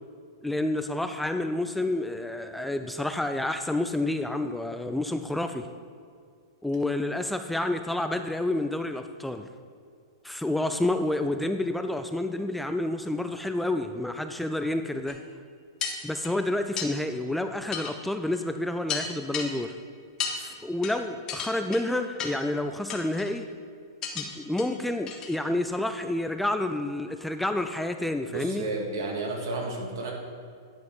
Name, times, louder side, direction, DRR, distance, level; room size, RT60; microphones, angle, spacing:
voice 1, 0.4-5.7 6.6-9.5 10.2-15.2 16.0-19.7 20.3-23.5 24.2-28.7, left 1 dB, 5° left, 7 dB, 0.3 m, -29 dB
sound 1, 15.1-15.2 15.8-16.3 16.8-16.9 17.7-17.9 18.3-18.4 18.9-19.5 20.2-20.4 20.8-21.0 21.3-21.8 22.2-22.5 22.9-23.3 24.0-24.3 24.6-24.7 25.1-25.4 25.7-25.8, left 6 dB, 30° left, 1.1 m, -33 dB
voice 2, 28.3-30.1, right 2 dB, 70° right, 0 dB, 1.9 m, -32 dB
10.5 x 5.2 x 3.9 m, 2.2 s
hypercardioid pair, 125°, 2 cm